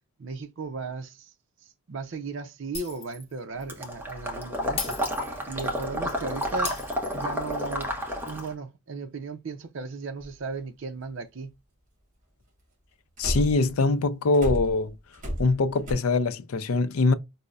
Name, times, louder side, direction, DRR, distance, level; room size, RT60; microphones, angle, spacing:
voice 1, 0.2-1.3 1.6-5.0 5.5-6.8 7.1-7.9 8.2-11.5, right 4 dB, 55° right, 0.4 m, -36 dB
Shatter, 2.7-3.3 3.6-3.8 4.8-5.8 6.6-7.7, left 5 dB, 25° left, 0.7 m, -36 dB
Water / Liquid, 3.7-8.5, equal, 10° right, 0.6 m, -31 dB
sound 1, 10.2-10.3 13.2-13.7 14.3-15.9, equal, 35° right, 1.3 m, -31 dB
voice 2, 13.2-14.9 15.4-17.1, left 3 dB, 75° left, 0.5 m, -23 dB
5.2 x 2.0 x 2.3 m
head